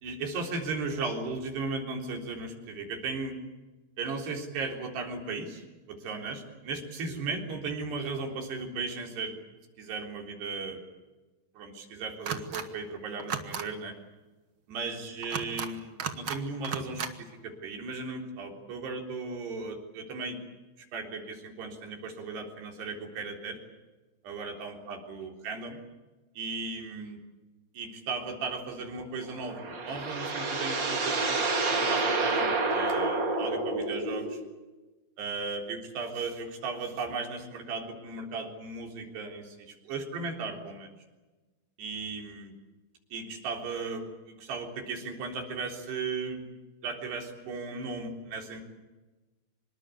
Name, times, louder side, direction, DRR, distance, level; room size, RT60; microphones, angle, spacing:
voice 1, 0.0-3.4 4.0-9.4 9.8-10.8 11.6-14.0 14.7-20.4 20.9-23.6 24.2-25.8 26.4-27.2 27.7-31.4 31.7-34.4 35.2-40.9 41.8-42.5 43.1-46.4 46.8-48.6, right 4 dB, 90° right, 2 dB, 5.9 m, -36 dB
sound 1, 12.3-12.6 13.2-13.6 15.2-15.7 16.0-16.4 16.6-17.1, right 6 dB, 50° right, 1.6 m, -34 dB
sound 2, 29.3-34.5, right 3 dB, 30° right, 2.8 m, -29 dB
26.0 x 23.0 x 8.4 m, 1.2 s
omnidirectional pair, 4.6 m